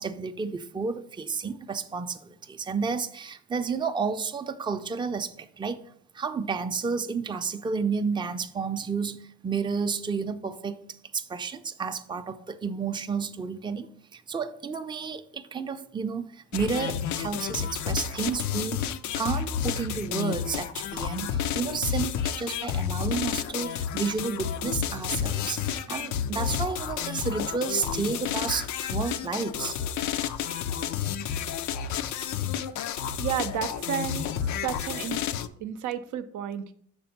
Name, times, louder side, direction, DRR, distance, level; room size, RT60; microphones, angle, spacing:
voice 1, 0.0-5.8 6.1-10.9 11.1-29.8, right 5 dB, 15° right, 0.4 m, -31 dB
sound 1, 16.5-35.5, left 8 dB, 70° left, 0.5 m, -31 dB
voice 2, 33.2-34.3 34.6-35.2 35.6-36.7, right 9 dB, 80° right, 0.6 m, -31 dB
6.1 x 3.5 x 5.8 m
cardioid pair, 90°, 30 cm